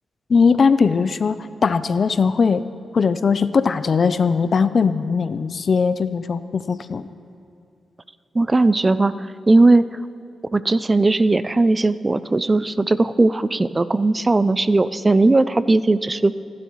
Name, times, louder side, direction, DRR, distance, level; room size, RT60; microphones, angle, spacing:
voice 1, 0.3-2.6 2.9-7.1, left 5 dB, 55° left, 13 dB, 0.5 m, -19 dB
voice 2, 8.3-9.9 10.5-16.3, right 2 dB, 25° right, 14 dB, 0.4 m, -18 dB
29.0 x 12.0 x 3.1 m, 2.8 s
cardioid pair, 85°, 0 cm